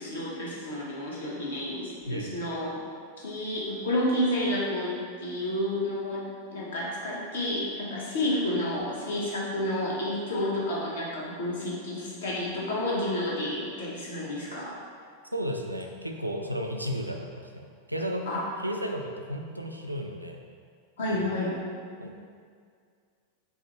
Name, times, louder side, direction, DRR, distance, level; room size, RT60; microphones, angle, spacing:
voice 1, 0.0-2.7 3.2-6.2 6.5-14.8 18.3-18.4 21.0-21.6, left 1 dB, 65° left, -5 dB, 1.0 m, -30 dB
voice 2, 2.1-2.4 15.3-18.3 18.6-20.4 21.1-21.3 22.0-22.2, equal, 85° right, 2 dB, 0.3 m, -34 dB
4.6 x 2.7 x 3.0 m, 2.1 s
figure-of-eight pair, 90°, 0 cm